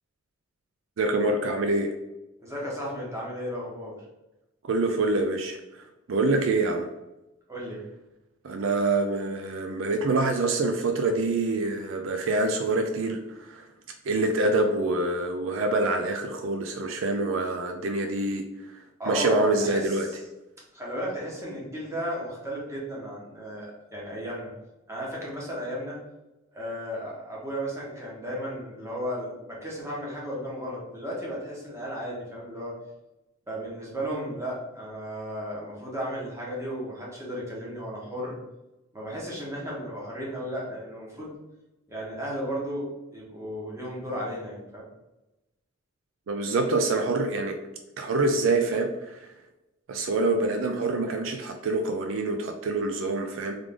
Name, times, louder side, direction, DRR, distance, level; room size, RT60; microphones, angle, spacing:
voice 1, 1.0-1.9 4.7-6.9 8.4-13.7 14.0-18.5 18.7-20.1 46.3-47.6 48.0-49.3 49.9-53.6, right 2 dB, 70° right, 5 dB, 0.4 m, -26 dB
voice 2, 2.4-4.0 7.5-7.8 19.0-20.2 20.7-24.5 24.9-26.0 26.5-32.7 33.5-38.4 38.9-41.3 41.9-44.9, equal, 15° right, -5 dB, 1.2 m, -34 dB
3.7 x 3.3 x 3.6 m, 1.0 s
head